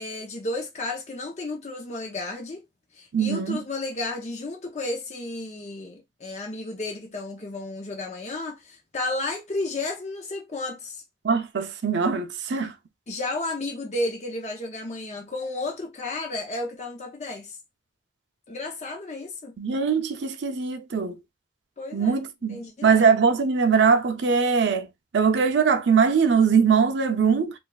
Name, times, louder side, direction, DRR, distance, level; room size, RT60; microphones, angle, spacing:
voice 1, 0.0-2.6 2.9-11.0 13.1-17.6 18.5-19.6 21.8-22.2 22.5-23.1, left 2 dB, 40° left, 0.6 m, -32 dB
voice 2, 3.1-3.6 11.2-12.7 19.6-21.2 21.9-27.5, right 6 dB, 80° right, 0.5 m, -22 dB
3.3 x 2.4 x 2.3 m
head